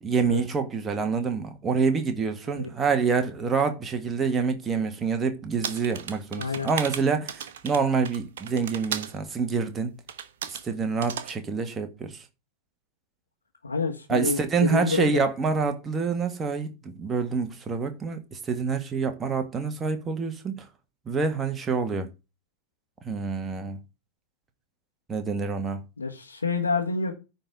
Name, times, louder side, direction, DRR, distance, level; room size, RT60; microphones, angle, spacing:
voice 1, 0.0-9.9 10.5-12.2 14.1-20.7 21.0-22.1 23.0-23.8 25.1-25.8, right 5 dB, 20° right, 1.7 m, -27 dB
sound 1, 5.6-9.2 10.1-10.7 11.0-11.4, right 9 dB, 60° right, 1.0 m, -35 dB
voice 2, 6.4-6.7 13.6-15.1 26.0-27.2, left 4 dB, 80° left, 1.7 m, -28 dB
9.8 x 4.1 x 7.3 m
figure-of-eight pair, 90°, 0 cm